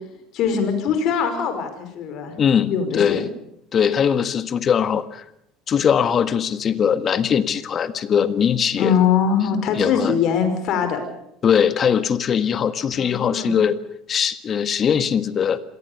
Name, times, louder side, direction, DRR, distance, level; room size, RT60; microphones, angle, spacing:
voice 1, 0.3-2.3 2.7-3.2 8.8-11.0 13.0-13.6, left 7 dB, 55° left, 8 dB, 5.3 m, -22 dB
voice 2, 2.4-3.3 3.7-5.2 5.7-9.0 9.8-10.2 11.4-13.8 14.1-15.6, left 7 dB, 40° left, 13 dB, 1.5 m, -20 dB
26.5 x 18.5 x 7.0 m, 0.78 s
hypercardioid pair, 70°, 0 cm